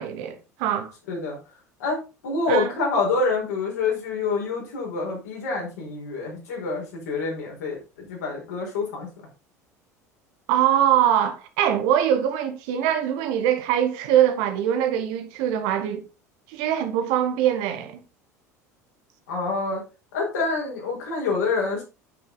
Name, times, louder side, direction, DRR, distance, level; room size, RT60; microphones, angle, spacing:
voice 1, 0.0-0.9 2.5-2.7 10.5-16.0 16.5-18.0, right 10 dB, 55° right, 1.6 m, -23 dB
voice 2, 1.8-9.1 19.3-19.8 20.1-21.8, left 3 dB, 70° left, 4.8 m, -27 dB
9.5 x 6.9 x 4.0 m
figure-of-eight pair, 70°, 9 cm